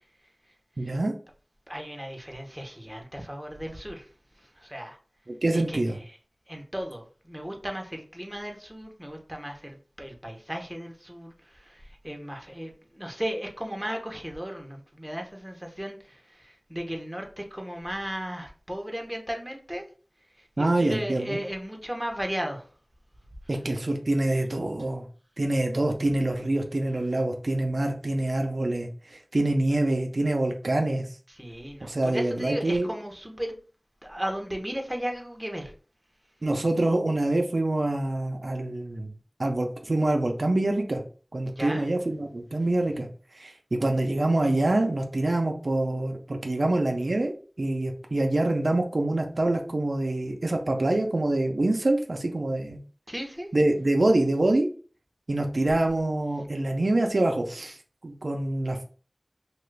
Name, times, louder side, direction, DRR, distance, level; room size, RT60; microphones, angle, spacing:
voice 1, 0.8-1.1 5.3-6.0 20.6-21.4 23.5-25.0 25.4-31.1 31.8-32.9 36.4-39.1 39.4-41.0 41.3-43.1 43.4-52.8 53.5-54.7 55.3-57.8 58.0-58.8, right 2 dB, 75° right, 3 dB, 0.4 m, -25 dB
voice 2, 1.7-4.1 4.4-5.0 5.5-5.8 6.5-19.8 20.6-22.7 31.3-33.6 34.0-35.7 41.6-41.9 53.1-53.5, equal, 10° right, 2 dB, 0.7 m, -35 dB
2.9 x 2.3 x 3.2 m, 0.40 s
wide cardioid pair, 45°, 0 cm